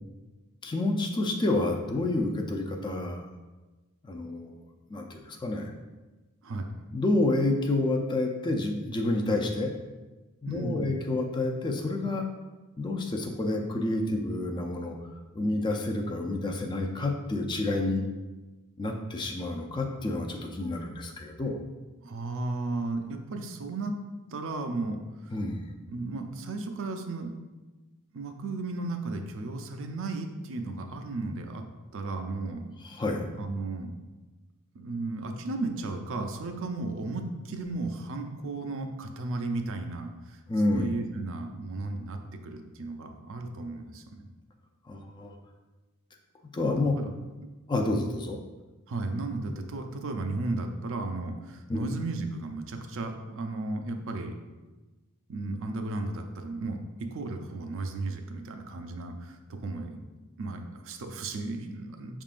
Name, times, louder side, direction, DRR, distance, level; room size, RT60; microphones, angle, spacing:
voice 1, 0.6-3.2 4.1-4.5 4.9-5.7 6.9-9.7 10.4-12.3 12.8-15.0 15.3-18.0 18.8-21.6 25.3-25.6 32.8-33.3 40.5-40.9 44.9-45.4 46.5-46.9 47.7-48.4 51.7-51.9, left 2 dB, 20° left, 2 dB, 0.4 m, -29 dB
voice 2, 10.5-10.9 22.0-23.9 24.3-25.4 25.9-27.3 28.1-31.6 31.9-32.7 33.3-33.9 34.7-40.4 40.7-44.3 46.7-47.1 47.4-47.5 48.9-54.3 55.3-59.9 60.4-62.2, right 2 dB, 60° right, 5 dB, 0.5 m, -34 dB
5.6 x 3.6 x 2.4 m, 1.2 s
head